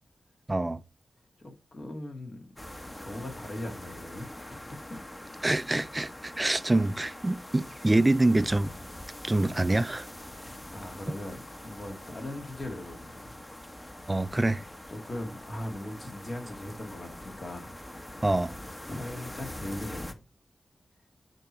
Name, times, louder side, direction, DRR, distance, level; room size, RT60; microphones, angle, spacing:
voice 1, 0.5-0.8 5.4-8.7 9.2-10.1 14.1-14.6 18.2-18.5, right 2 dB, 25° right, 0.5 m, -25 dB
voice 2, 1.4-2.5 3.0-5.0 10.3-13.3 14.9-17.7 18.9-20.2, left 1 dB, 55° left, 1.9 m, -40 dB
sound 1, 2.6-20.1, left 1 dB, 25° left, 1.1 m, -44 dB
8.8 x 3.0 x 4.4 m
cardioid pair, 40°, 0 cm